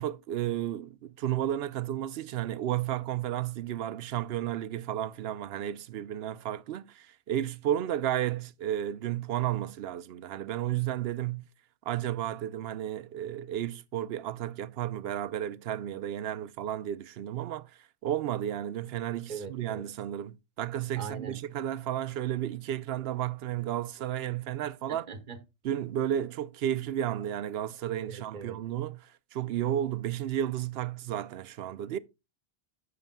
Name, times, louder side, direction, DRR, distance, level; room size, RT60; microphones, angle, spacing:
voice 1, 0.0-11.4 11.9-17.7 18.0-25.1 25.6-32.0, right 11 dB, 80° right, 0.8 m, -32 dB
voice 2, 19.3-19.8 20.9-21.4 24.9-25.4 28.1-28.6, right 5 dB, 50° right, 1.2 m, -41 dB
14.5 x 6.6 x 2.2 m
omnidirectional pair, 1.0 m